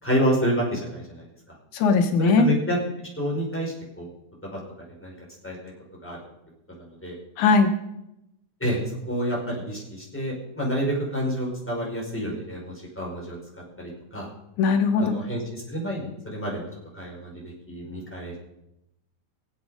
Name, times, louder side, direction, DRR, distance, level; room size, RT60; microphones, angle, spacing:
voice 1, 0.0-1.3 2.2-2.8 3.2-4.1 4.5-4.6 5.0-5.1 5.4-5.7 6.0-6.2 6.7-7.1 8.6-8.8 9.1-13.4 13.8-14.3 15.0-16.7 16.9-18.4, equal, 5° left, -3 dB, 4.9 m, -28 dB
voice 2, 1.7-2.5 7.4-7.7 14.6-15.2, left 4 dB, 85° left, 6 dB, 2.5 m, -19 dB
24.0 x 8.3 x 5.0 m, 0.87 s
omnidirectional pair, 3.4 m